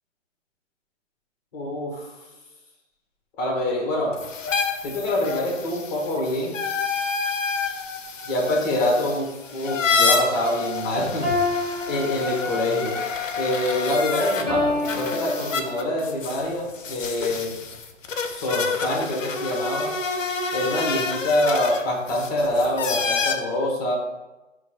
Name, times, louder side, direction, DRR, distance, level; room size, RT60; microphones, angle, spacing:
voice 1, 1.5-2.1 3.4-4.1 4.8-6.5 8.2-11.3 11.9-13.0 13.4-17.5 18.3-19.9 20.5-24.0, left 1 dB, 30° left, -1 dB, 1.2 m, -25 dB
sound 1, 4.1-14.4 14.8-23.3, left 4 dB, 80° left, 0.7 m, -28 dB
sound 2, 11.2-12.8 14.5-15.9, left 2 dB, ahead, 0.4 m, -28 dB
4.4 x 2.3 x 4.4 m, 1.1 s
hypercardioid pair, 140°, 38 cm